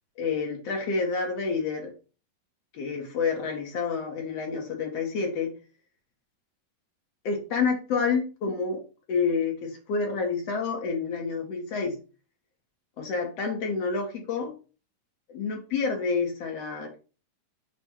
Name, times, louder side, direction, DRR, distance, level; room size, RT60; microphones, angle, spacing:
voice 1, 0.2-1.9 2.7-5.5 7.2-8.8 9.1-12.0 13.0-14.5 15.3-17.0, left 5 dB, 60° left, 2 dB, 1.8 m, -28 dB
7.5 x 2.5 x 5.7 m, 0.34 s
omnidirectional pair, 4.2 m